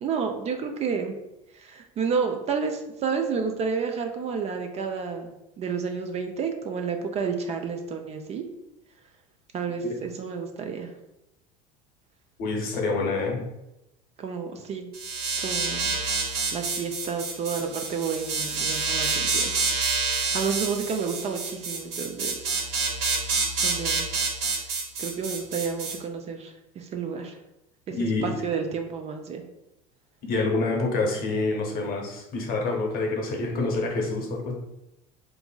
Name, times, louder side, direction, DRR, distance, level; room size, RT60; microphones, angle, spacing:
voice 1, 0.0-1.2 1.5-8.4 9.5-10.9 14.2-14.9 15.4-15.9 16.5-19.5 20.0-22.6 23.6-24.1 25.0-27.4 27.9-28.0 28.2-29.4, right 5 dB, 35° right, 4 dB, 0.4 m, -30 dB
voice 2, 12.4-13.4 27.9-28.3 30.3-34.5, left 3 dB, 50° left, 0 dB, 0.8 m, -27 dB
sound 1, 14.9-25.9, right 4 dB, 55° right, 0.8 m, -28 dB
2.8 x 2.5 x 2.2 m, 0.90 s
hypercardioid pair, 80°, 19 cm